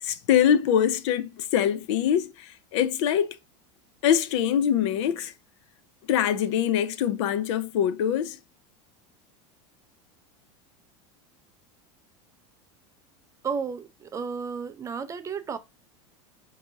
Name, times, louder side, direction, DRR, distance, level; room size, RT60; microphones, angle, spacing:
voice 1, 0.0-3.4 4.0-5.3 6.1-8.4, left 9 dB, 75° left, 0.5 m, -24 dB
voice 2, 13.4-15.6, right 6 dB, 20° right, 0.4 m, -32 dB
3.8 x 2.7 x 3.5 m
supercardioid pair, 125°, 15 cm